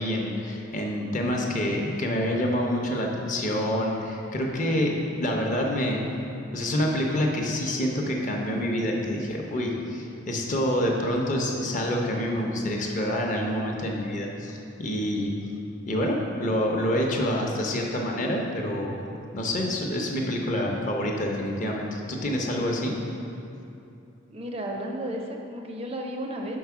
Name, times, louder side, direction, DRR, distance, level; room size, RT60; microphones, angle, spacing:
voice 1, 0.0-6.1 6.5-15.3 15.9-19.0 19.3-23.0, equal, 40° left, 0 dB, 0.7 m, -27 dB
voice 2, 24.3-26.6, equal, 30° right, 2 dB, 0.4 m, -33 dB
4.7 x 4.2 x 5.7 m, 2.7 s
head